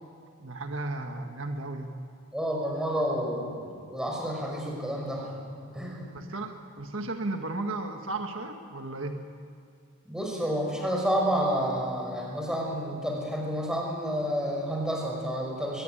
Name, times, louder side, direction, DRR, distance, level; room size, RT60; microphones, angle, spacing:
voice 1, 0.4-2.0 6.1-9.3, right 2 dB, 70° right, 4 dB, 1.7 m, -34 dB
voice 2, 2.3-5.4 5.7-6.1 10.1-15.8, equal, 5° right, -1 dB, 5.5 m, -30 dB
24.0 x 21.5 x 9.3 m, 2.3 s
head